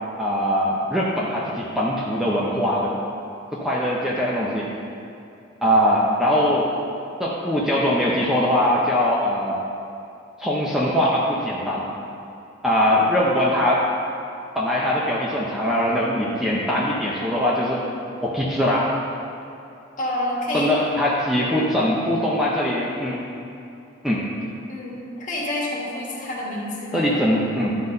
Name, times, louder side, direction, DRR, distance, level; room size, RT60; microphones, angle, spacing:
voice 1, 0.2-2.9 3.5-4.7 5.6-6.7 7.2-9.6 10.4-11.9 12.6-13.8 14.5-17.8 18.2-18.9 20.5-23.2 24.0-24.3 26.9-27.8, equal, ahead, -6 dB, 0.7 m, -21 dB
voice 2, 20.0-20.7 24.7-27.1, left 1 dB, 40° left, -5 dB, 1.9 m, -28 dB
12.0 x 4.1 x 5.3 m, 2.7 s
head